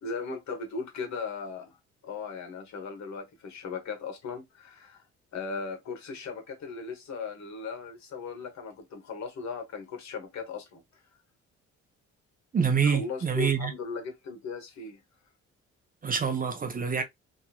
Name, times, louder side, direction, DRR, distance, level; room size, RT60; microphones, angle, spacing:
voice 1, 0.0-1.8 2.0-5.0 5.3-10.8 12.8-15.0, left 5 dB, 65° left, 1.1 m, -37 dB
voice 2, 12.5-13.7 16.0-17.0, right 6 dB, 30° right, 0.6 m, -26 dB
2.8 x 2.5 x 2.3 m
cardioid pair, 90°, 30 cm